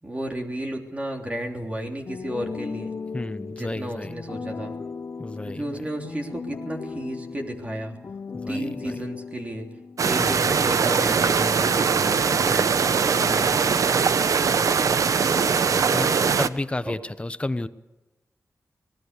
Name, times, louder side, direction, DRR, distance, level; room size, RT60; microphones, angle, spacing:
voice 1, 0.0-2.9 3.5-4.7 5.5-7.9 8.5-9.7 10.0-12.7 16.8-16.9, right 1 dB, 25° right, 2 dB, 3.3 m, -33 dB
sound 1, 2.0-10.2, left 5 dB, 50° left, 0.7 m, -37 dB
voice 2, 3.1-4.1 5.2-5.8 8.3-9.0 10.2-10.4 13.2-13.6 15.9-17.7, left 2 dB, 20° left, 12 dB, 1.1 m, -32 dB
sound 2, 10.0-16.5, right 6 dB, 70° right, 0.8 m, -21 dB
25.0 x 19.0 x 6.8 m, 1.0 s
wide cardioid pair, 95°, 6 cm